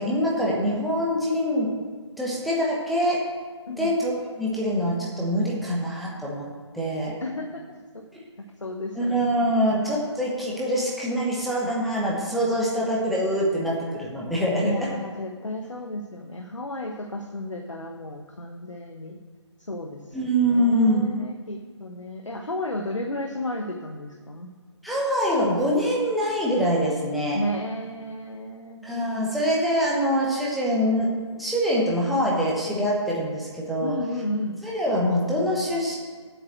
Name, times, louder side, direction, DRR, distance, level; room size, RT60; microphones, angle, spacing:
voice 1, 0.0-1.7 2.2-3.2 3.8-4.1 4.4-6.5 6.7-7.2 9.0-14.9 20.1-21.1 24.8-27.4 28.8-31.1 31.3-33.9 34.6-36.0, equal, ahead, -6 dB, 1.1 m, -24 dB
voice 2, 7.2-8.1 8.6-9.3 14.6-19.2 19.6-24.5 27.3-28.9 33.8-34.6, left 1 dB, 85° left, 3 dB, 1.2 m, -33 dB
8.0 x 7.0 x 7.6 m, 1.6 s
figure-of-eight pair, 150°, 15 cm